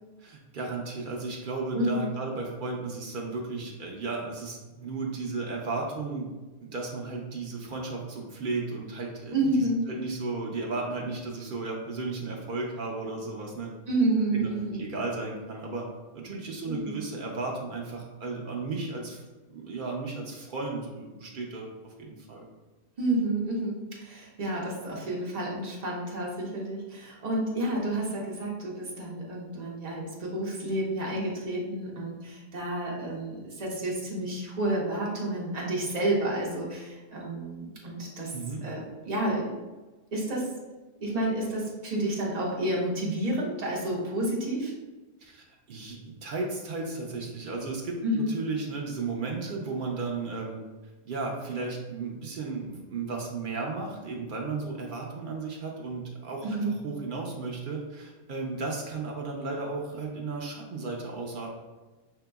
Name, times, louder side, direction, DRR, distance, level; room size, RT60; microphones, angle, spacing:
voice 1, 0.2-6.3 6.6-13.7 14.3-15.8 16.1-19.2 19.5-22.4 38.3-38.6 45.2-50.6 51.1-61.5, right 3 dB, 60° right, -1 dB, 0.5 m, -34 dB
voice 2, 1.7-2.0 9.3-9.8 13.9-14.8 16.7-17.0 23.0-38.3 38.6-39.6 40.1-40.5 41.0-44.7 48.0-48.3 56.4-56.8, right 1 dB, 35° right, -3 dB, 0.8 m, -30 dB
5.6 x 2.9 x 2.3 m, 1.2 s
omnidirectional pair, 1.6 m